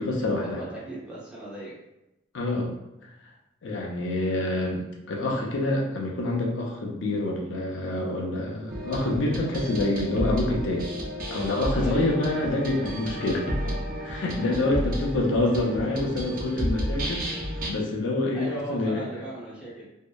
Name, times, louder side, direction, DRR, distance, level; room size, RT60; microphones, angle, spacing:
voice 1, 0.0-0.6 2.3-2.7 3.0-3.1 3.6-4.8 5.1-10.9 11.3-17.2 17.6-19.2, left 2 dB, 75° left, -1 dB, 0.5 m, -27 dB
voice 2, 0.6-1.8 11.8-12.1 18.3-19.8, right 1 dB, 5° right, -9 dB, 0.7 m, -37 dB
sound 1, 8.7-17.7, equal, 45° right, 0.4 m, -32 dB
2.7 x 2.0 x 2.2 m, 0.92 s
head